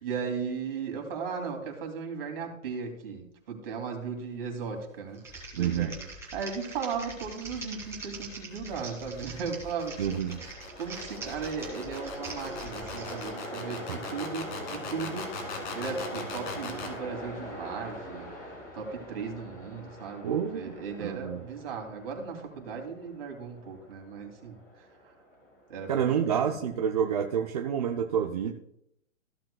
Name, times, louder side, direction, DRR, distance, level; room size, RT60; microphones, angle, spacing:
voice 1, 0.0-5.2 5.5-6.0 6.3-10.0 10.3-10.4 10.8-18.3 18.7-24.6 25.7-26.5, right 5 dB, 45° right, 3 dB, 2.6 m, -36 dB
Typing, 5.1-13.3, right 3 dB, 5° right, 2.3 m, -43 dB
voice 2, 5.6-5.9 10.0-10.4 13.9-14.0 20.2-21.4 25.9-28.5, right 8 dB, 30° right, 4 dB, 0.5 m, -28 dB
sound 1, 7.7-17.0, left 4 dB, 35° left, 2.1 m, -41 dB
Train, 9.8-26.9, equal, 20° left, 3.7 m, -43 dB
15.0 x 7.6 x 2.2 m, 0.77 s
hypercardioid pair, 145°, 40 cm